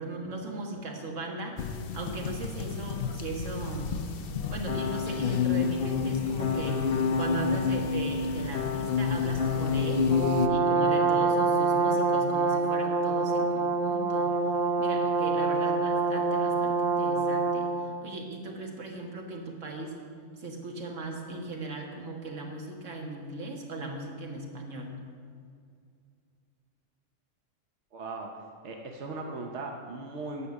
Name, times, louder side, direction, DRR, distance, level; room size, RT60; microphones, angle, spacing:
voice 1, 0.0-4.0 4.5-6.8 7.2-10.1 10.5-14.4 14.8-19.9 20.4-24.9, right 2 dB, 85° right, 1 dB, 1.8 m, -38 dB
sound 1, 1.6-10.5, left 5 dB, 55° left, 0.7 m, -29 dB
Brass instrument, 10.1-17.8, right 4 dB, 40° right, 0.9 m, -26 dB
voice 2, 27.9-28.3 28.6-30.5, right 3 dB, 65° right, 2 dB, 1.1 m, -38 dB
9.8 x 6.5 x 7.0 m, 2.2 s
omnidirectional pair, 1.3 m